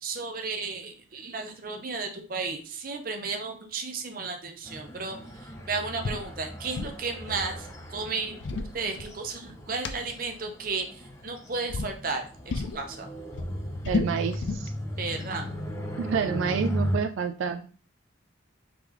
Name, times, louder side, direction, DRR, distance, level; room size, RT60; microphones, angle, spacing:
voice 1, 0.0-8.4 8.7-13.1 15.0-15.5, right 4 dB, 45° right, 4 dB, 0.6 m, -34 dB
sound 1, 4.6-17.0, equal, 15° left, 0.5 m, -36 dB
sound 2, 6.0-6.3 6.5-7.0 8.2-9.4 9.8-9.9 11.0-11.3 11.7-11.9 12.5-12.8 13.2-14.7, left 4 dB, 70° left, 0.4 m, -31 dB
voice 2, 13.9-14.7 16.0-17.7, right 6 dB, 85° right, 6 dB, 0.3 m, -29 dB
3.7 x 3.4 x 3.0 m, 0.39 s
head